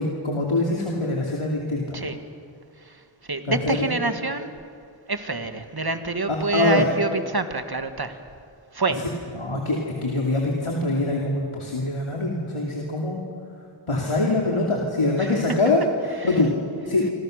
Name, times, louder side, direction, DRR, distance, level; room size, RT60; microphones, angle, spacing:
voice 1, 0.0-2.1 3.5-3.9 6.5-6.9 9.4-13.2 13.9-15.8 16.2-16.5 16.9-17.0, left 2 dB, 90° left, -1 dB, 2.8 m, -24 dB
voice 2, 3.3-4.5 5.1-8.2 8.7-9.0 15.2-15.4 16.2-16.4, right 3 dB, 50° right, 8 dB, 1.8 m, -27 dB
26.0 x 25.5 x 6.6 m, 2.4 s
wide cardioid pair, 45°, 49 cm